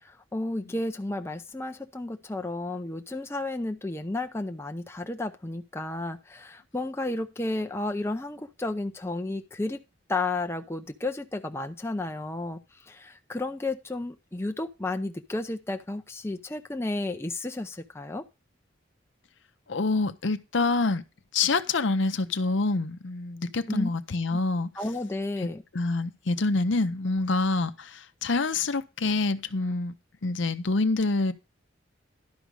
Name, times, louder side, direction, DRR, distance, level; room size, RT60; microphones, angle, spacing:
voice 1, 0.0-9.8 10.1-18.2 23.7-23.9 24.3-24.4 24.8-25.6, left 2 dB, 15° left, 0.5 m, -32 dB
voice 2, 19.7-21.0 21.3-24.7 25.4-25.5 25.7-29.9 30.2-31.3, left 3 dB, 70° left, 0.7 m, -26 dB
11.5 x 5.2 x 4.7 m
head